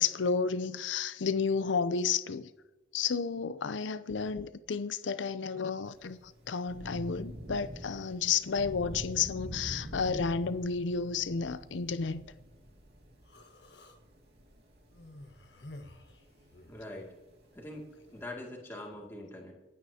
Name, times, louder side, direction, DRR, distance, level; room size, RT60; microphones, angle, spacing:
voice 1, 0.0-2.5 2.9-12.3, left 5 dB, 85° left, 0.6 m, -31 dB
Thunder / Rain, 5.8-18.3, equal, 65° right, 2.3 m, -46 dB
Human voice, 13.2-14.0 14.9-16.9, left 1 dB, 70° left, 1.4 m, -51 dB
voice 2, 16.7-17.1 17.5-19.5, left 1 dB, 15° left, 2.3 m, -43 dB
27.0 x 9.4 x 2.9 m
head